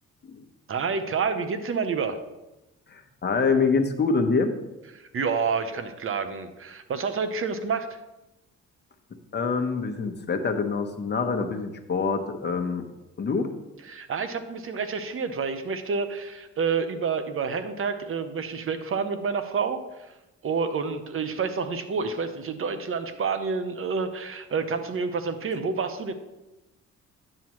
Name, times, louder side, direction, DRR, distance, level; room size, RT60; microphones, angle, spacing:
voice 1, 0.7-2.2 4.9-8.0 13.8-20.1 20.4-26.1, right 5 dB, 45° right, 9 dB, 0.9 m, -29 dB
voice 2, 2.9-4.6 9.3-12.9 13.2-13.5, left 4 dB, 35° left, 5 dB, 1.1 m, -25 dB
9.9 x 7.7 x 3.1 m, 1.0 s
cardioid pair, 90°, 30 cm